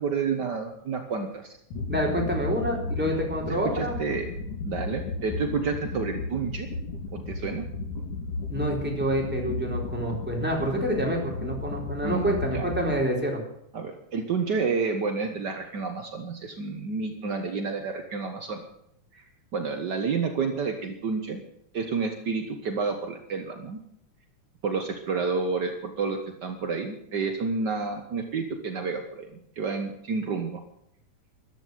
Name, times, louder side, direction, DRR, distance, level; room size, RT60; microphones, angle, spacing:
voice 1, 0.0-1.5 3.7-4.2 4.6-6.7 7.1-7.6 12.0-12.7 13.7-18.6 19.1-19.2 19.5-21.4 21.7-23.8 24.6-29.3 29.6-30.6, right 5 dB, 65° right, 5 dB, 1.0 m, -30 dB
sound 1, 1.7-13.0, left 3 dB, 70° left, 4.3 m, -34 dB
voice 2, 1.9-4.0 8.5-13.4, right 1 dB, 5° right, -2 dB, 3.8 m, -27 dB
14.0 x 12.0 x 7.6 m, 0.76 s
omnidirectional pair, 3.7 m